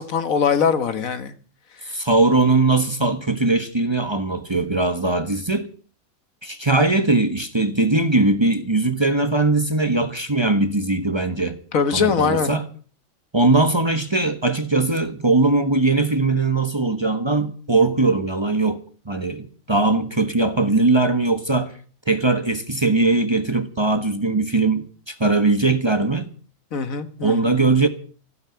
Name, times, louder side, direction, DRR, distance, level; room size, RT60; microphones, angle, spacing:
voice 1, 0.0-1.3 11.7-12.5 26.7-27.5, left 6 dB, 70° left, 1.7 m, -21 dB
voice 2, 1.9-5.7 6.4-11.6 11.9-12.6 13.3-21.7 22.1-26.3 27.2-27.9, right 3 dB, 20° right, 1.3 m, -20 dB
15.0 x 9.8 x 8.1 m
omnidirectional pair, 1.5 m